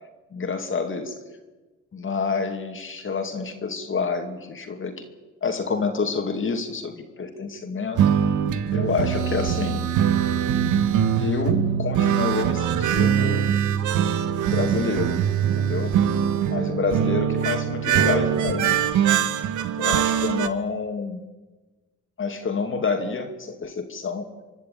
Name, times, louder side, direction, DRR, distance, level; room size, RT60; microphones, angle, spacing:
voice 1, 0.3-1.2 1.9-5.0 5.4-8.0 8.7-9.9 11.2-13.5 14.5-15.2 15.6-15.9 16.5-18.8 19.8-21.2 22.2-24.3, left 4 dB, 40° left, 5 dB, 2.5 m, -28 dB
sound 1, 8.0-20.5, right 9 dB, 80° right, 1.2 m, -22 dB
25.5 x 11.0 x 9.2 m, 1.2 s
cardioid pair, 90°, 30 cm